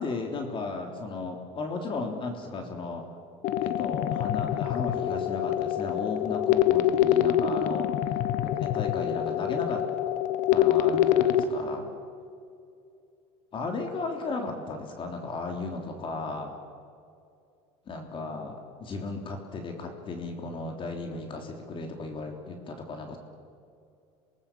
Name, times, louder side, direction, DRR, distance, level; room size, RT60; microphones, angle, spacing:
voice 1, 0.0-3.0 3.6-7.9 8.6-9.8 10.5-11.9 13.5-16.5 17.9-23.2, left 3 dB, 35° left, 3 dB, 3.3 m, -35 dB
sound 1, 3.4-11.4, left 11 dB, 60° left, 1.3 m, -25 dB
26.5 x 19.0 x 7.5 m, 2.4 s
supercardioid pair, 105°, 14 cm